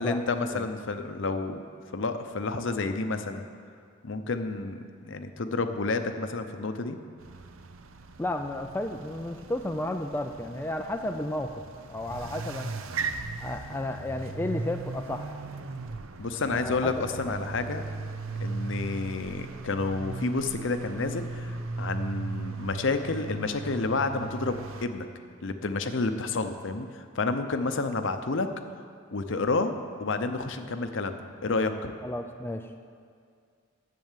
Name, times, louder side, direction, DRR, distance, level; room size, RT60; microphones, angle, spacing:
voice 1, 0.0-1.6 1.9-3.4 4.0-7.0 16.2-17.8 18.4-25.1 25.4-28.5 29.1-29.7 30.0-31.9, left 3 dB, 60° left, 8 dB, 0.7 m, -30 dB
sound 1, 7.2-24.9, right 3 dB, 75° right, 0.6 m, -38 dB
voice 2, 8.2-11.6 11.9-12.7 13.4-15.4 16.5-16.9 32.0-32.7, left 1 dB, 10° left, 5 dB, 0.3 m, -33 dB
10.5 x 7.7 x 7.3 m, 2.2 s
head